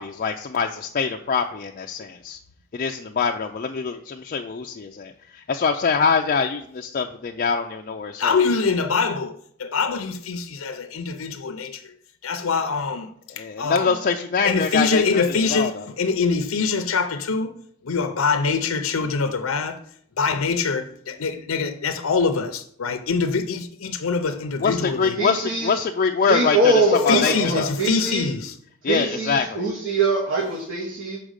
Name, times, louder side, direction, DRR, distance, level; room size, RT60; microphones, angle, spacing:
voice 1, 0.0-2.4 2.7-8.3 13.3-15.9 24.6-26.7 27.0-27.7 28.8-29.7, left 5 dB, 40° left, 0.4 m, -24 dB
voice 2, 8.2-11.9 12.2-14.0 14.4-17.6 17.8-19.8 20.2-25.2 27.1-28.5, left 4 dB, 85° left, 0.6 m, -24 dB
voice 3, 25.2-25.8 26.3-28.3 28.8-31.2, right 2 dB, 65° right, 1.8 m, -23 dB
5.9 x 5.0 x 6.4 m
head